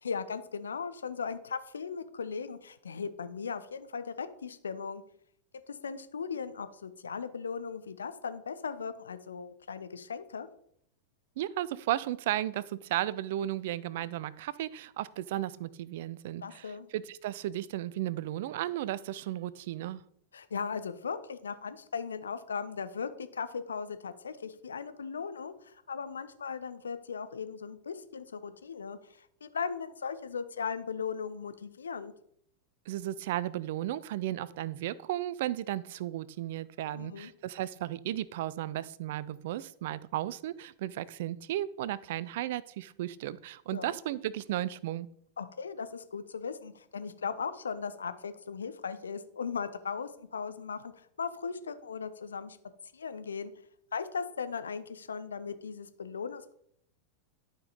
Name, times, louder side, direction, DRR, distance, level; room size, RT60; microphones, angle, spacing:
voice 1, 0.0-5.0 5.7-10.5 16.4-16.9 20.3-32.1 36.9-37.3 43.7-44.0 45.4-52.6 52.9-53.5 53.9-56.5, left 6 dB, 70° left, 12 dB, 0.7 m, -38 dB
voice 2, 11.4-20.0 32.9-45.1, right 13 dB, 55° right, 20 dB, 0.4 m, -34 dB
12.0 x 5.2 x 4.1 m, 0.70 s
figure-of-eight pair, 90°, 0 cm